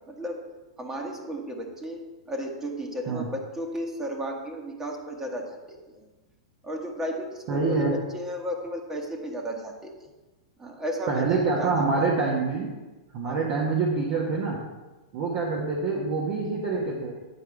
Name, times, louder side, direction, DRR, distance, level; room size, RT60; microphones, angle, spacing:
voice 1, 0.1-0.4 0.8-6.1 6.6-7.9 8.1-9.9 10.6-12.1 13.2-13.5, equal, 15° right, 1 dB, 1.4 m, -34 dB
voice 2, 7.5-7.9 11.1-12.7 13.1-14.6 15.1-17.1, right 4 dB, 50° right, -3 dB, 1.4 m, -26 dB
9.1 x 4.9 x 4.7 m, 1.2 s
hypercardioid pair, 110°, 3 cm